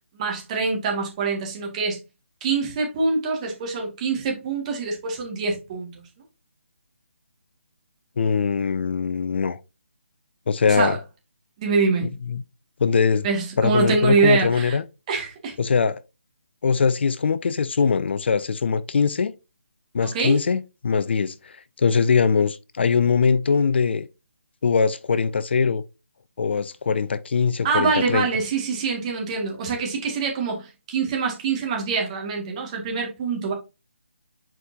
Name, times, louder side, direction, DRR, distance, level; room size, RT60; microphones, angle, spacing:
voice 1, 0.1-2.0 2.4-6.0 10.7-11.0 11.6-12.1 13.2-14.8 15.1-15.6 20.1-20.4 27.6-33.5, right 4 dB, 30° right, 2.1 m, -24 dB
voice 2, 8.2-9.6 10.5-11.0 12.3-12.4 12.8-13.3 13.6-14.8 15.6-16.0 16.6-19.3 19.9-24.1 24.6-25.8 26.4-28.3, left 5 dB, 55° left, 0.5 m, -21 dB
7.4 x 5.0 x 2.7 m
figure-of-eight pair, 155°, 7 cm